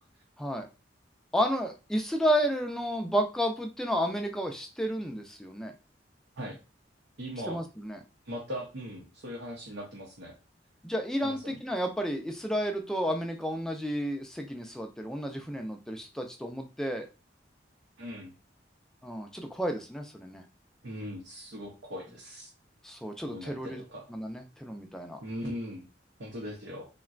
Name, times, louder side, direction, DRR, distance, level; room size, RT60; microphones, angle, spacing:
voice 1, 1.3-5.7 7.5-8.0 10.8-17.1 19.0-20.4 22.8-23.8 24.1-25.2, equal, 5° left, 4 dB, 0.3 m, -31 dB
voice 2, 7.2-7.6 8.2-10.3 11.2-11.6 18.0-18.3 20.8-22.5 23.3-24.1 25.2-25.9 26.2-26.9, equal, 90° right, -1 dB, 0.7 m, -39 dB
3.8 x 2.1 x 2.4 m, 0.30 s
head